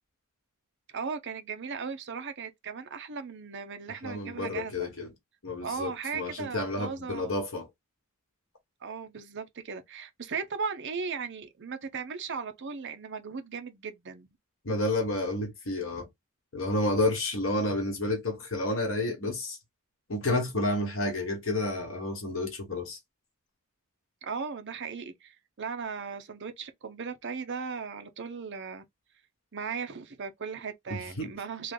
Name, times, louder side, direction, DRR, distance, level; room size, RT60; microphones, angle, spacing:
voice 1, 0.9-4.9 5.6-7.3 8.8-14.3 24.2-28.8 29.5-31.7, right 5 dB, 50° right, 0.6 m, -37 dB
voice 2, 4.0-5.1 5.4-7.7 14.6-16.1 16.5-19.6 20.1-23.0 30.9-31.3, left 2 dB, 60° left, 1.3 m, -30 dB
3.3 x 2.2 x 3.7 m
head